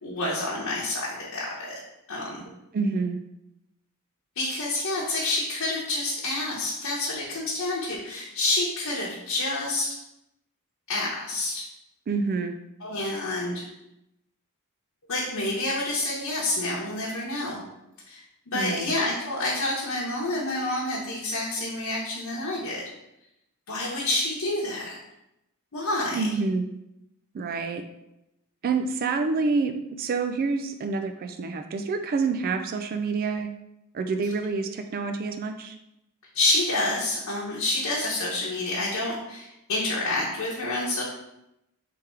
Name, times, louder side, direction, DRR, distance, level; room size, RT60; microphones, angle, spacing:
voice 1, 0.0-1.8 2.1-2.4 4.4-9.9 10.9-11.7 12.8-13.7 15.1-17.6 18.1-22.9 23.7-25.0 25.7-26.3 36.3-41.0, left 2 dB, 70° left, -6 dB, 1.0 m, -28 dB
voice 2, 2.7-3.2 12.1-12.6 18.5-19.0 26.1-26.7 27.3-27.8 28.6-33.5 33.9-35.8, right 4 dB, 45° right, 6 dB, 0.3 m, -27 dB
3.5 x 3.4 x 4.4 m, 0.87 s
head